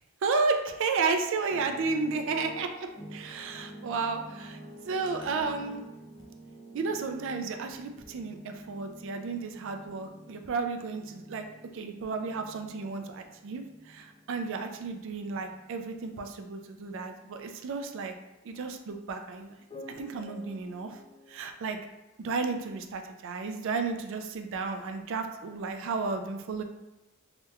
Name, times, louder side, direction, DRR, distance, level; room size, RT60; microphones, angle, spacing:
voice 1, 0.2-4.6 4.8-5.8 6.7-11.5 11.7-18.2 18.4-19.5 19.9-21.0 21.3-21.8 22.2-26.6, right 4 dB, 65° right, 5 dB, 0.4 m, -33 dB
sound 1, 1.5-17.0 17.3-17.5 19.7-21.4, right 1 dB, 20° left, 0.4 m, -49 dB
3.3 x 2.8 x 2.3 m, 1.0 s
head